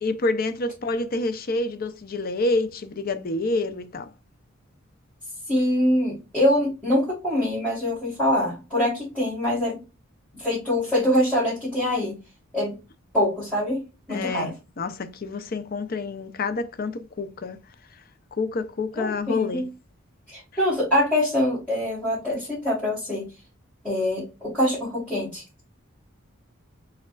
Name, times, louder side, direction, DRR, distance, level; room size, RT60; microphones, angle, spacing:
voice 1, 0.0-4.1 14.1-17.6 18.3-19.6, left 3 dB, 45° left, 0.5 m, -28 dB
voice 2, 5.5-9.8 10.3-12.2 12.5-12.8 13.1-13.8 14.1-14.5 19.0-19.7 20.3-23.3 23.8-25.4, left 1 dB, 10° left, 2.7 m, -24 dB
5.5 x 3.5 x 2.3 m
head